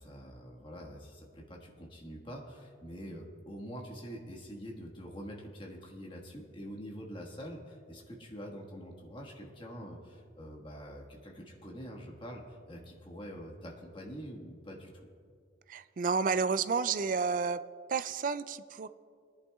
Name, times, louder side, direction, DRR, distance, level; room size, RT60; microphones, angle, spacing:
voice 1, 0.0-15.1, equal, 25° left, -1 dB, 1.5 m, -45 dB
voice 2, 15.7-17.6 17.9-18.9, right 5 dB, 45° right, 14 dB, 0.3 m, -30 dB
22.5 x 11.0 x 2.3 m, 2.2 s
head